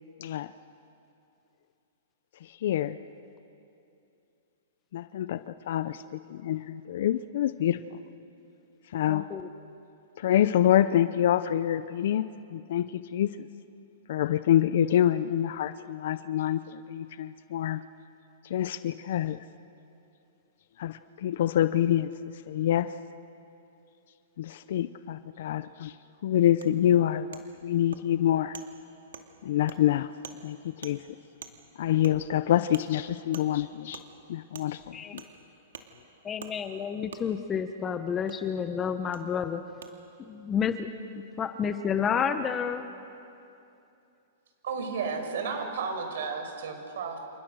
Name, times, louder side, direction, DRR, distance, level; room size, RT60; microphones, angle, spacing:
voice 1, 2.6-3.0 4.9-7.8 8.9-9.3 10.2-12.2 12.5-13.5 14.1-17.8 18.5-19.4 20.8-22.1 22.5-22.9 24.4-25.9 26.2-28.6 29.4-30.1 30.4-31.0 31.8-34.0 34.3-35.2, left 11 dB, 65° left, 13 dB, 0.7 m, -26 dB
voice 2, 9.1-9.5 34.9-35.1 36.2-39.6 40.3-42.9, left 7 dB, 20° left, 9 dB, 1.1 m, -30 dB
Wood, 26.6-26.7 27.3-27.4 27.9-28.0 28.5-28.7 29.1-29.3 29.7-29.8 30.2-30.4 30.8-30.9 31.4-31.5 32.0-32.1 32.7-32.8 33.3-33.5 33.9-34.1 34.5-34.7 35.2-35.3 35.7-35.9 36.4-36.5 37.1-37.2 38.3-38.4 39.1-39.2 39.8-39.9, right 7 dB, 90° right, 2.4 m, -43 dB
voice 3, 44.6-47.2, right 5 dB, 70° right, 5 dB, 5.4 m, -33 dB
29.0 x 29.0 x 6.4 m, 2.7 s
hypercardioid pair, 145°, 0 cm